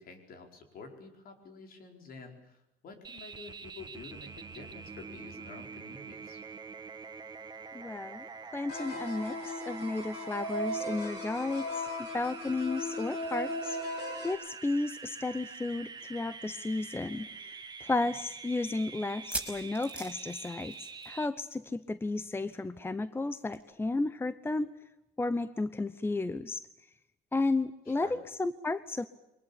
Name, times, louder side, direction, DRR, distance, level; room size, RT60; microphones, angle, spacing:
voice 1, 0.0-6.4 18.0-18.1 27.9-28.1, left 4 dB, 60° left, 5 dB, 4.9 m, -49 dB
sound 1, 3.0-21.3, right 5 dB, 25° right, 1.5 m, -46 dB
voice 2, 7.7-24.7 25.2-26.6 27.3-29.1, left 2 dB, 15° left, 15 dB, 0.8 m, -33 dB
sound 2, 8.7-14.3, left 1 dB, 80° left, 4.2 m, -37 dB
sound 3, 16.4-16.5 16.8-16.9 17.5-17.6 19.1-21.2 21.5-21.7 22.0-22.1 23.5-23.6, right 2 dB, 5° right, 5.4 m, -40 dB
23.5 x 20.0 x 8.7 m, 0.89 s
cardioid pair, 110°, 17 cm